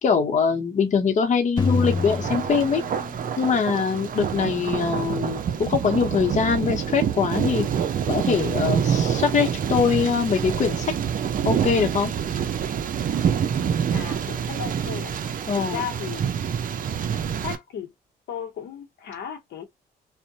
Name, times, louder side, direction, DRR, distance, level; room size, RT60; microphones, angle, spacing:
voice 1, 0.0-2.8 3.4-7.7 8.1-10.9 11.4-12.1 15.5-15.8, left 6 dB, 45° left, 0.8 m, -23 dB
sound 1, 1.6-3.7, left 5 dB, 25° left, 0.4 m, -27 dB
Thunder, 1.6-17.6, right 8 dB, 55° right, 0.5 m, -26 dB
voice 2, 13.9-15.1 15.5-16.3 17.4-17.9 18.3-19.6, left 8 dB, 75° left, 0.8 m, -35 dB
2.6 x 2.1 x 2.7 m
cardioid pair, 75°, 17 cm